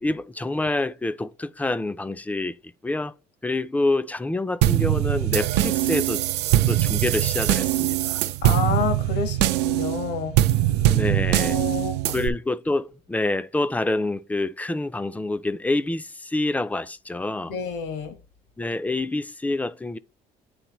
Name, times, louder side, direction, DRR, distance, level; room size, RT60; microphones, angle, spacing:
voice 1, 0.0-2.6 2.8-3.1 3.4-6.2 6.7-8.2 10.9-11.6 12.1-17.5 18.6-20.0, left 2 dB, 10° left, 0.3 m, -27 dB
sound 1, 4.6-12.3, right 14 dB, 85° right, 0.4 m, -22 dB
voice 2, 8.4-10.3 11.4-12.1 17.5-18.2, left 6 dB, 80° left, 1.3 m, -29 dB
9.3 x 3.8 x 3.0 m
cardioid pair, 110°, 17 cm